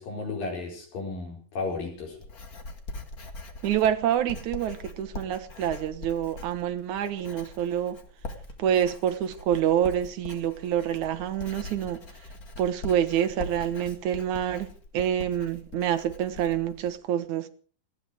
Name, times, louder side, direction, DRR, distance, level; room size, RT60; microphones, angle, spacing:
voice 1, 0.0-2.2, left 3 dB, 80° left, 6.5 m, -34 dB
Writing, 1.6-17.0, left 2 dB, 35° left, 1.9 m, -42 dB
voice 2, 3.6-8.0 8.6-12.0 12.6-17.5, right 10 dB, 65° right, 2.5 m, -27 dB
19.0 x 14.5 x 4.9 m
omnidirectional pair, 3.9 m